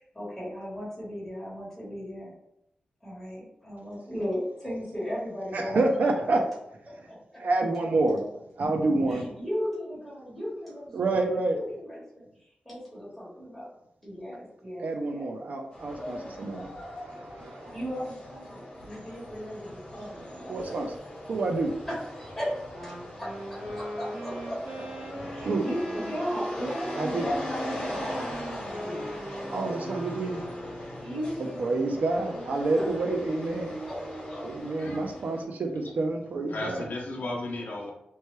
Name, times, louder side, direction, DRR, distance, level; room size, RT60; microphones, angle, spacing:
voice 1, 0.0-2.3 3.0-5.8 7.1-7.4 9.1-13.7 14.0-15.3 17.7-20.8 21.9-24.8 25.3-29.1 31.0-32.9 33.9-34.0, equal, 5° left, -9 dB, 1.2 m, -37 dB
voice 2, 5.5-6.4 7.4-8.2 8.6-9.3 10.9-11.6 14.8-17.7 20.5-20.9 21.3-21.7 25.4-25.6 27.0-27.2 29.5-30.4 31.6-33.8 34.4-36.8, right 2 dB, 65° right, 3 dB, 0.4 m, -28 dB
sound 1, 15.7-35.4, left 1 dB, 40° left, 1.0 m, -40 dB
Wind instrument woodwind instrument, 22.7-31.0, right 1 dB, 45° right, 0.9 m, -39 dB
voice 3, 34.8-35.2 36.5-37.9, left 2 dB, 75° left, -2 dB, 0.6 m, -35 dB
3.0 x 2.2 x 3.0 m, 0.82 s
wide cardioid pair, 170°, 3 cm